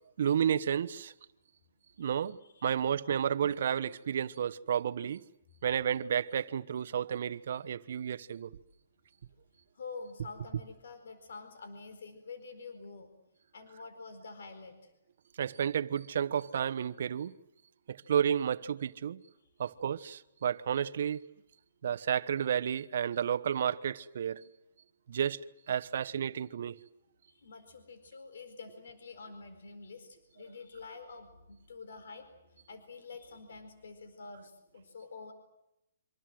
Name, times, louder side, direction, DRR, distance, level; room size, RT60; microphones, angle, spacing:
voice 1, 0.2-1.1 2.0-2.4 2.6-5.2 5.6-8.5 15.4-17.3 17.9-19.2 19.6-21.2 21.8-24.5 25.1-26.8, right 8 dB, 60° right, 1.1 m, -31 dB
voice 2, 9.7-13.1 13.5-14.9 19.4-19.5 27.3-35.3, left 4 dB, 75° left, 4.5 m, -48 dB
27.0 x 26.0 x 7.8 m
hypercardioid pair, 165°, 0 cm